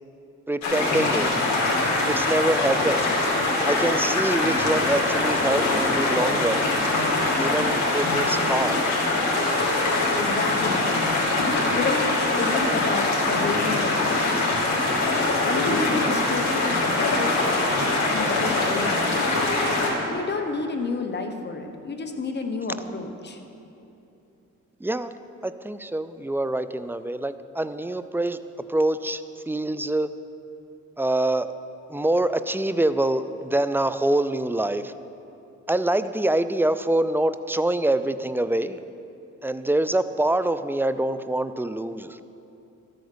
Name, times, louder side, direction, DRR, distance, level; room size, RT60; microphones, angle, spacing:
voice 1, 0.5-1.3 2.1-3.1 3.7-6.7 7.4-8.8 24.8-25.2 25.4-28.4 28.7-30.1 31.0-31.5 31.9-34.9 35.7-38.8 39.4-42.2, right 1 dB, 10° right, 12 dB, 0.3 m, -25 dB
sound 1, 0.6-19.9, left 2 dB, 65° left, 2.7 m, -23 dB
voice 2, 10.2-11.2 11.6-12.1 12.4-14.5 14.9-19.5 20.0-23.4, left 3 dB, 35° left, 5 dB, 1.1 m, -30 dB
13.0 x 8.0 x 5.0 m, 2.8 s
cardioid pair, 90°, 30 cm